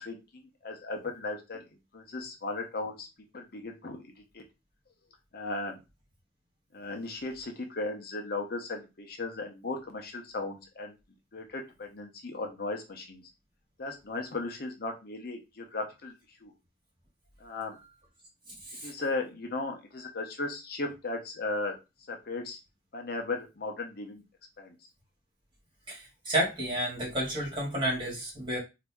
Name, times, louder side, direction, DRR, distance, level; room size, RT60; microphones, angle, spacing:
voice 1, 0.0-1.6 1.9-3.1 3.3-4.0 4.3-4.4 5.3-5.7 6.7-10.9 11.3-13.2 13.8-16.1 16.4-16.5 17.4-17.8 18.8-21.8 22.1-22.6 22.9-24.2 24.6-24.7, left 3 dB, 55° left, 4 dB, 0.8 m, -36 dB
voice 2, 26.3-28.6, right 1 dB, 25° right, -3 dB, 2.3 m, -30 dB
4.0 x 2.8 x 3.5 m, 0.25 s
head